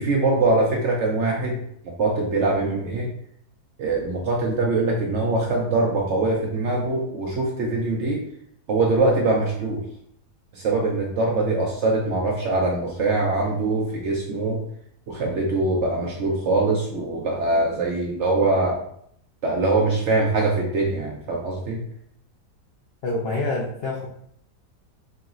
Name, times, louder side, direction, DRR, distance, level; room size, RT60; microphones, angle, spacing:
voice 1, 0.0-1.6 2.0-3.1 3.8-8.2 8.7-9.8 10.5-14.6 15.1-18.8 19.4-21.8, right 2 dB, 65° right, -1 dB, 0.7 m, -23 dB
voice 2, 23.0-24.1, left 2 dB, 80° left, -2 dB, 0.5 m, -26 dB
4.7 x 2.9 x 2.4 m, 0.70 s
omnidirectional pair, 1.7 m